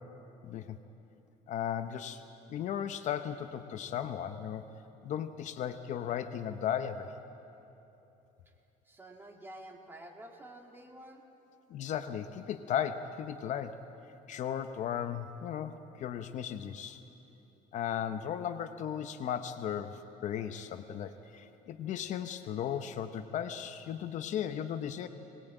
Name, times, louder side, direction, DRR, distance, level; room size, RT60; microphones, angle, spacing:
voice 1, 0.4-0.8 1.5-2.2 2.5-4.7 5.0-7.1 11.7-13.8 14.3-17.0 17.7-25.1, left 9 dB, 50° left, 9 dB, 0.8 m, -36 dB
voice 2, 8.8-11.2 18.2-18.3 21.8-21.9, right 1 dB, 15° right, 2 dB, 2.2 m, -50 dB
21.5 x 19.5 x 9.0 m, 3.0 s
cardioid pair, 150°, 16 cm